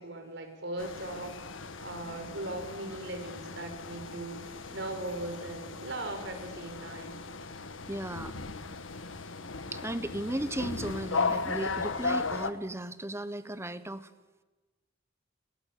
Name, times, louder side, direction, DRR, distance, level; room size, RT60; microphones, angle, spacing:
voice 1, 0.0-1.4 1.8-7.2, right 2 dB, 65° right, 7 dB, 5.3 m, -39 dB
sound 1, 0.8-12.5, left 4 dB, 85° left, 1.6 m, -36 dB
voice 2, 7.9-8.4 9.7-14.1, right 1 dB, 15° right, 13 dB, 1.2 m, -35 dB
29.5 x 23.0 x 8.5 m, 1.2 s
head